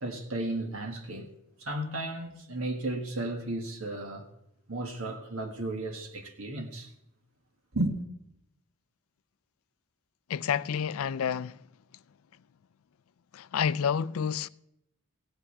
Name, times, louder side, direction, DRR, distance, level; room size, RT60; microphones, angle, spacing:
voice 1, 0.0-1.3 1.6-4.2 4.7-6.9 7.7-7.9, right 1 dB, 75° right, 1.6 m, -34 dB
voice 2, 10.3-11.6 13.3-14.5, left 7 dB, 80° left, 0.4 m, -29 dB
16.5 x 5.9 x 8.2 m
head